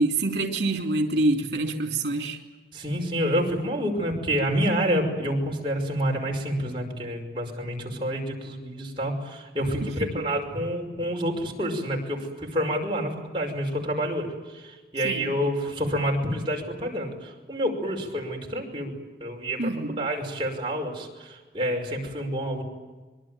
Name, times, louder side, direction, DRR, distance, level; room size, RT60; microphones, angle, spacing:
voice 1, 0.0-2.4 9.8-10.2 15.0-15.3 19.6-20.1, right 2 dB, 70° right, 4 dB, 3.1 m, -26 dB
voice 2, 2.7-18.9 19.2-22.6, equal, 30° right, 0 dB, 5.6 m, -28 dB
25.5 x 23.0 x 9.1 m, 1.3 s
head